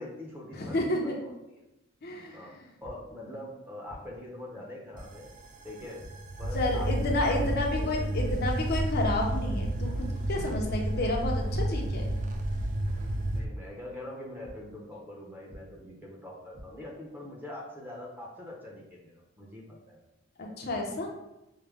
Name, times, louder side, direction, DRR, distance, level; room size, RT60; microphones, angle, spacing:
voice 1, 0.0-1.6 2.3-5.3 5.6-6.0 6.4-8.6 10.6-10.9 13.3-20.0, left 1 dB, 10° right, -3 dB, 0.8 m, -44 dB
voice 2, 0.6-1.3 2.0-2.4 6.5-12.0 20.4-21.1, left 2 dB, 50° left, 0 dB, 0.6 m, -30 dB
sound 1, 2.8-2.9 3.9-4.0 4.9-5.0 6.0-6.1 7.0-7.1 8.1-8.2 8.6-8.8 9.1-9.2 10.2-10.3 11.2-11.4 12.3-12.4 13.4-13.5 14.4-14.5 15.5-15.6 16.3-16.6, equal, 55° right, 1.4 m, -48 dB
sound 2, 5.0-13.5, right 1 dB, 40° right, 0.4 m, -31 dB
4.9 x 2.1 x 3.4 m, 0.92 s
head